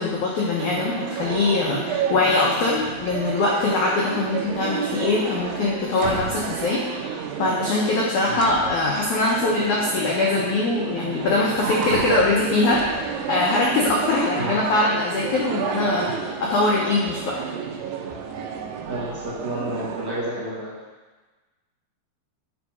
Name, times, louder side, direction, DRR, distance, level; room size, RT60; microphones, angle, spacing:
voice 1, 0.0-16.1 16.4-17.4, left 3 dB, 85° left, -3 dB, 1.7 m, -22 dB
sound 1, 0.6-20.2, right 7 dB, 85° right, 2.8 m, -31 dB
voice 2, 18.9-20.7, right 1 dB, 55° right, -7 dB, 2.2 m, -30 dB
8.9 x 5.2 x 4.7 m, 1.3 s
omnidirectional pair, 4.8 m